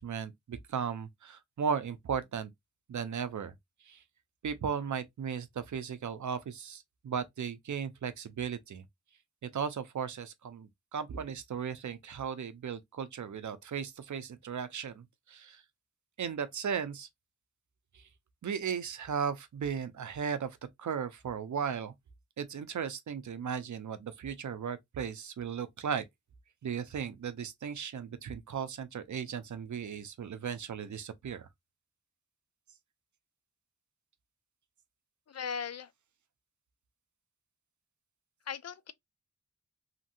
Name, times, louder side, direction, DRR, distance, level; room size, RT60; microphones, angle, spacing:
voice 1, 0.0-2.5 2.9-3.5 3.8-4.0 4.4-8.8 9.4-15.6 16.2-17.1 17.9-18.0 18.4-21.9 22.4-26.1 26.6-31.5, right 7 dB, 70° right, 0.6 m, -36 dB
voice 2, 35.3-35.9 38.5-38.9, left 7 dB, 55° left, 0.4 m, -38 dB
2.8 x 2.7 x 2.6 m
cardioid pair, 40°, 31 cm